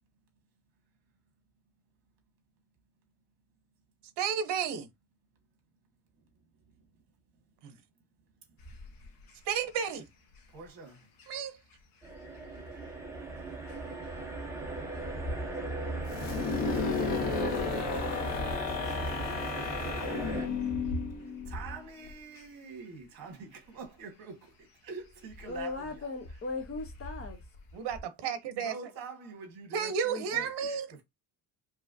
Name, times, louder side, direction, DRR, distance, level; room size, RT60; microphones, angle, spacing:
voice 1, 4.2-4.9 7.6-7.7 9.5-10.0 11.3-11.6 27.7-28.7 29.7-30.9, right 7 dB, 70° right, 0.9 m, -32 dB
sound 1, 8.6-28.0, equal, 50° left, 1.1 m, -47 dB
voice 2, 10.5-11.1 21.2-26.1 28.5-30.0 30.3-31.0, right 4 dB, 55° right, 1.8 m, -46 dB
sound 2, 12.0-20.5, right 2 dB, 5° right, 0.8 m, -38 dB
sound 3, 16.1-21.8, left 5 dB, 75° left, 1.7 m, -33 dB
voice 3, 25.5-27.4 30.0-30.5, left 3 dB, 30° left, 0.8 m, -38 dB
4.7 x 3.0 x 2.6 m
cardioid pair, 175°, 42 cm